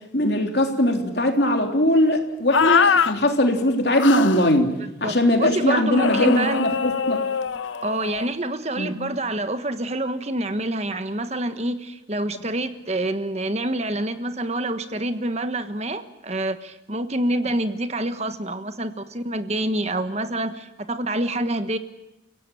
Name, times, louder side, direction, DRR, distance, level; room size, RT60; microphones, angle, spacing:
voice 1, 0.1-4.7 5.0-7.2 8.8-8.9, left 1 dB, 60° left, 4 dB, 3.4 m, -20 dB
sound 1, 2.5-3.1 4.0-4.5 6.0-8.3, left 6 dB, 90° left, 0.9 m, -23 dB
voice 2, 5.0-6.7 7.8-21.8, right 1 dB, 35° right, 9 dB, 1.3 m, -27 dB
30.0 x 17.0 x 9.2 m, 0.93 s
head